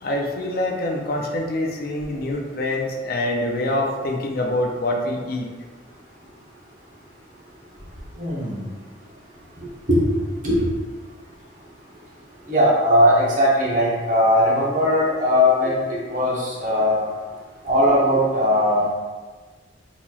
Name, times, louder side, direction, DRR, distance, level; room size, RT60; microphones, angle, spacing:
voice 1, 0.0-5.5, left 1 dB, 55° left, 1 dB, 0.4 m, -25 dB
voice 2, 8.2-8.5 9.9-10.0 10.4-10.7 12.5-15.8 16.1-17.0 17.6-18.9, equal, 45° right, -6 dB, 1.0 m, -19 dB
4.0 x 2.9 x 2.3 m, 1.4 s
head